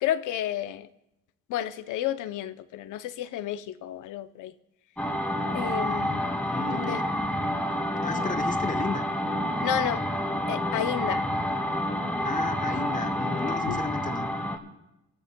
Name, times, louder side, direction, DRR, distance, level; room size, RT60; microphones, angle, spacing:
voice 1, 0.0-0.9 1.5-4.5 5.5-6.2 6.7-7.0 9.6-10.1 10.5-11.3 13.7-13.9, left 11 dB, 85° left, 0.6 m, -31 dB
sound 1, 5.0-14.6, equal, 5° left, 2.0 m, -28 dB
voice 2, 6.4-7.1 8.0-9.1 12.2-14.3, left 4 dB, 25° left, 1.3 m, -33 dB
27.0 x 13.5 x 2.2 m
cardioid pair, 90°, 30 cm